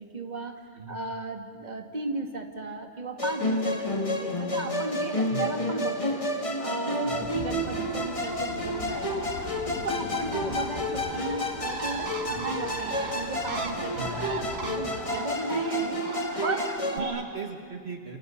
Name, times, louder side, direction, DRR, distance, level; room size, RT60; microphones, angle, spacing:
voice 1, 0.0-6.2 6.6-9.3 9.7-17.2, right 3 dB, 35° right, 4 dB, 2.1 m, -35 dB
Musical instrument, 3.2-17.0, left 1 dB, 25° left, 2.0 m, -30 dB
sound 1, 7.1-15.2, left 3 dB, 75° left, 2.0 m, -42 dB
Bird, 7.6-16.8, right 5 dB, 85° right, 1.8 m, -40 dB
voice 2, 17.0-18.2, right 4 dB, 55° right, 3 dB, 2.0 m, -37 dB
28.5 x 28.5 x 7.1 m, 2.1 s
omnidirectional pair, 1.3 m